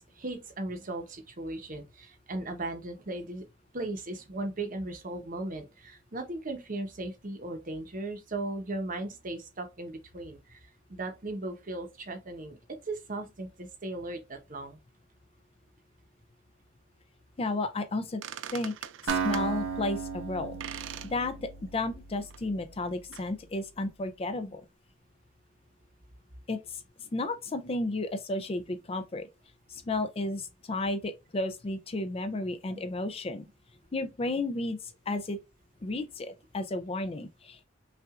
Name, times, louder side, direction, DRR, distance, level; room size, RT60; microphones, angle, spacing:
voice 1, 0.2-3.4 3.7-12.6 12.9-14.8 32.7-32.8, right 2 dB, 40° right, 0.8 m, -37 dB
voice 2, 17.4-18.2 18.5-18.7 19.0-24.6 26.5-26.8 27.1-29.3 29.7-33.4 33.9-35.4 35.8-37.6, left 2 dB, 30° left, 0.4 m, -33 dB
sound 1, 17.9-18.0 18.2-19.5 20.6-21.1 21.5-21.6 22.3-22.4 23.1-23.3, right 10 dB, 65° right, 0.3 m, -41 dB
Acoustic guitar, 19.1-22.9, right 6 dB, 90° right, 0.8 m, -35 dB
5.6 x 2.4 x 2.4 m
head